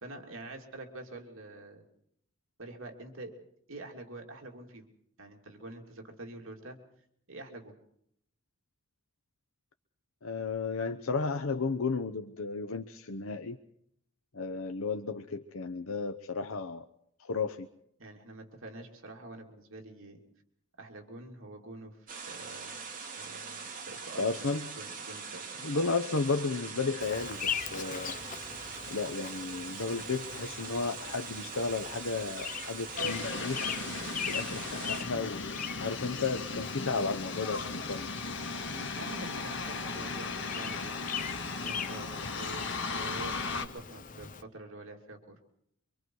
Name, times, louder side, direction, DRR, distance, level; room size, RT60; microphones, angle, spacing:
voice 1, 0.0-1.8 2.6-3.3 3.7-4.8 5.2-6.8 7.3-7.7 18.0-20.2 20.8-22.8 23.2-25.4 38.7-41.0 41.6-42.7 42.9-45.4, right 2 dB, 70° right, 2 dB, 2.8 m, -46 dB
voice 2, 10.2-13.6 14.3-16.8 17.2-17.7 24.2-24.8 25.6-28.1 28.9-33.6 34.2-38.1, left 4 dB, 80° left, 7 dB, 0.9 m, -33 dB
sound 1, 22.1-35.0, right 5 dB, 40° right, 3.0 m, -42 dB
Bird vocalization bird call bird song, 27.0-44.4, left 7 dB, 40° left, 0.8 m, -42 dB
sound 2, 33.0-43.7, left 4 dB, 60° left, 1.9 m, -36 dB
25.0 x 24.5 x 4.7 m, 0.70 s
head